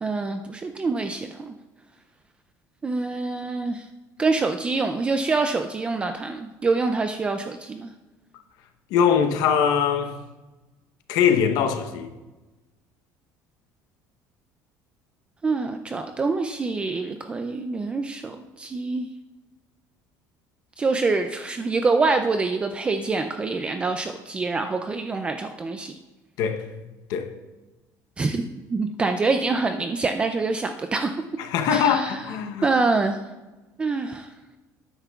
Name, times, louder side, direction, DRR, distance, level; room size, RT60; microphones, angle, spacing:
voice 1, 0.0-1.5 2.8-3.9 4.2-7.9 15.4-19.1 20.8-25.9 28.2-28.4 28.7-31.2 31.7-32.2 32.6-33.2 33.8-34.3, right 3 dB, 15° right, 0.3 m, -25 dB
voice 2, 8.9-10.1 11.1-12.1 26.4-26.6 27.1-27.3 31.4-32.7, left 7 dB, 70° left, 0.9 m, -22 dB
12.5 x 9.5 x 2.3 m
cardioid pair, 170°, 7 cm